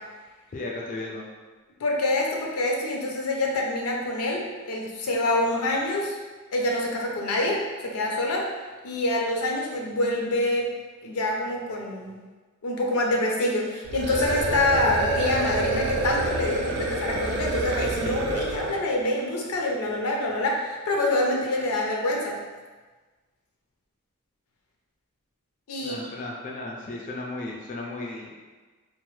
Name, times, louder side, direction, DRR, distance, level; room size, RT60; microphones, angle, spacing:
voice 1, 0.5-1.2 25.8-28.3, left 2 dB, 35° left, -1 dB, 0.3 m, -35 dB
voice 2, 1.8-6.2 6.5-8.5 8.8-10.7 11.0-12.1 12.6-22.4 25.7-26.0, left 1 dB, 90° left, -1 dB, 0.5 m, -26 dB
sound 1, 13.8-18.9, right 2 dB, 50° right, 0.3 m, -27 dB
2.9 x 2.0 x 3.0 m, 1.3 s
head